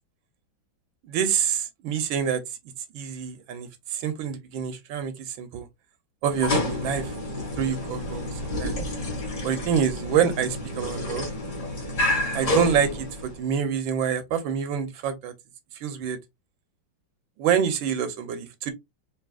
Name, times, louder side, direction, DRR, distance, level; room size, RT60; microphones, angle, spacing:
voice 1, 1.1-2.4 2.9-5.7 6.2-7.1 7.6-8.8 9.4-11.3 12.3-15.3 15.7-16.2 17.4-18.7, right 8 dB, 80° right, 1.5 m, -26 dB
sound 1, 6.3-13.5, left 1 dB, 40° left, 1.7 m, -29 dB
4.8 x 2.9 x 2.4 m
omnidirectional pair, 2.1 m